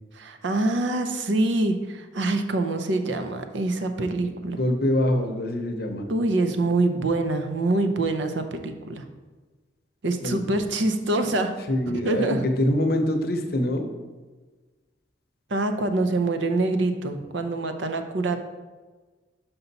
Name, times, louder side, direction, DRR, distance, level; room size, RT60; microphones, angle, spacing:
voice 1, 0.2-4.6 6.1-9.0 10.0-11.5 11.9-12.4 15.5-18.4, right 2 dB, 75° right, 6 dB, 0.6 m, -25 dB
voice 2, 4.6-6.1 10.2-10.4 11.7-13.9, left 1 dB, 50° left, 5 dB, 0.7 m, -24 dB
5.8 x 5.4 x 4.0 m, 1.3 s
head